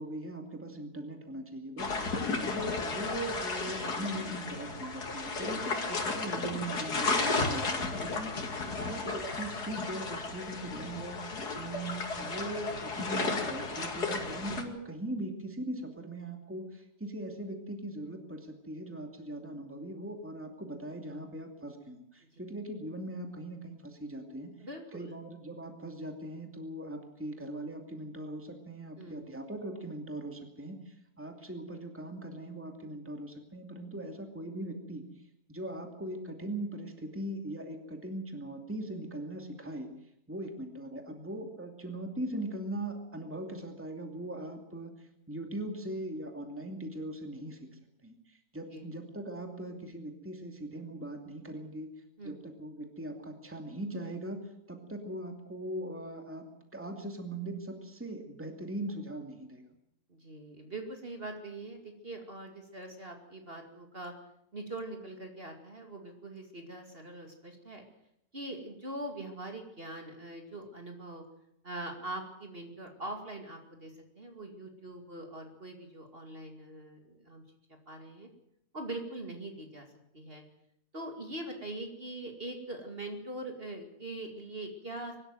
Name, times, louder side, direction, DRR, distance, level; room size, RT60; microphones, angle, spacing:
voice 1, 0.0-11.2 11.6-24.5 24.9-35.0 35.5-39.9 40.3-47.6 48.0-51.9 52.2-56.4 56.7-59.6, right 1 dB, 10° right, 4 dB, 2.6 m, -40 dB
sound 1, 1.8-14.6, left 3 dB, 90° left, 3.0 m, -34 dB
voice 2, 24.6-25.2 29.0-29.3 34.0-34.1 48.7-48.9 52.2-52.4 60.1-64.1 64.5-67.8 68.3-71.2 71.6-77.4 77.9-78.3 78.7-79.9 80.1-80.4 80.9-85.1, right 2 dB, 35° right, 3 dB, 2.6 m, -42 dB
23.5 x 13.0 x 9.2 m, 0.78 s
omnidirectional pair, 1.6 m